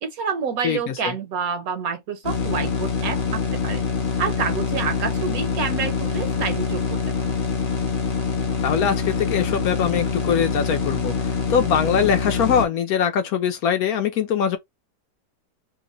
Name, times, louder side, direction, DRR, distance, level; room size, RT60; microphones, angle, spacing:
voice 1, 0.0-3.8 4.2-7.4, right 6 dB, 70° right, 1.0 m, -28 dB
voice 2, 0.6-1.1 8.6-14.6, left 7 dB, 70° left, 1.0 m, -22 dB
sound 1, 2.2-12.7, left 5 dB, 45° left, 0.7 m, -25 dB
2.9 x 2.0 x 3.8 m
omnidirectional pair, 1.8 m